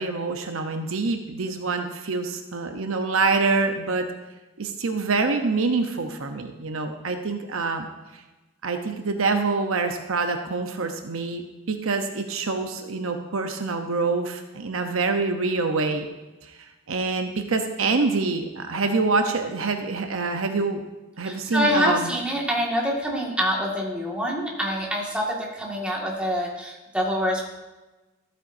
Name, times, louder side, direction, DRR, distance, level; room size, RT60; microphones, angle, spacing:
voice 1, 0.0-4.1 4.6-7.9 8.6-16.1 16.4-16.5 16.9-20.8 21.2-22.1, right 3 dB, 70° right, 5 dB, 0.8 m, -26 dB
voice 2, 21.2-27.5, equal, 5° right, -3 dB, 1.9 m, -26 dB
14.5 x 8.9 x 2.7 m, 1.1 s
head